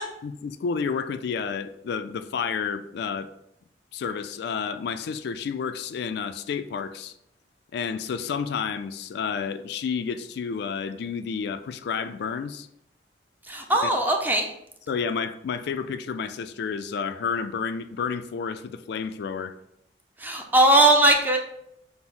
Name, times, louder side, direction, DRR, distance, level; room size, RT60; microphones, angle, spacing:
voice 1, 0.2-3.3 3.9-7.1 7.7-12.7 13.8-13.9 14.9-19.5, left 6 dB, 65° left, 11 dB, 0.3 m, -30 dB
voice 2, 13.4-14.5 20.2-21.4, right 1 dB, 10° right, 2 dB, 0.5 m, -19 dB
5.9 x 2.0 x 3.7 m, 0.77 s
head